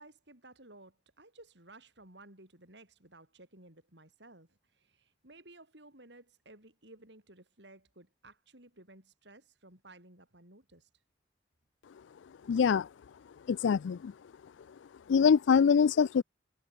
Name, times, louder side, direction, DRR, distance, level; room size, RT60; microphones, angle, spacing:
voice 1, 0.0-10.9, right 2 dB, 70° right, 7.5 m, -56 dB
voice 2, 12.5-12.9 13.5-14.1 15.1-16.2, left 6 dB, 90° left, 0.4 m, -24 dB
head